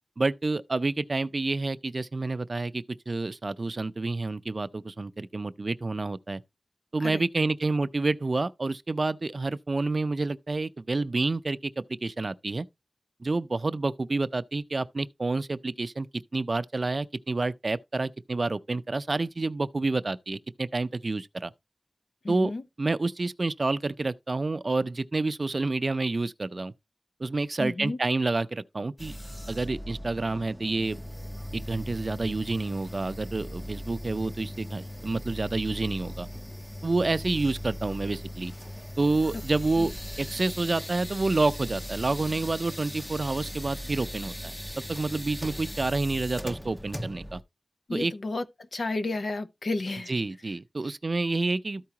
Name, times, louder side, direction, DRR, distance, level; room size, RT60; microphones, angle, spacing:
voice 1, 0.2-6.4 6.9-12.7 13.2-16.1 16.3-21.5 22.3-22.5 22.8-26.7 27.2-29.1 29.5-31.0 31.5-36.3 36.8-38.5 39.0-39.9 40.2-47.4 47.9-48.1 50.1-51.8, right 3 dB, 60° right, 0.5 m, -29 dB
voice 2, 22.2-22.6 27.6-28.0 39.8-39.9 47.9-48.4 48.7-50.1, left 2 dB, 85° left, 0.8 m, -31 dB
sound 1, 29.0-47.4, equal, ahead, 0.6 m, -39 dB
13.5 x 4.7 x 2.9 m
wide cardioid pair, 65°, 0 cm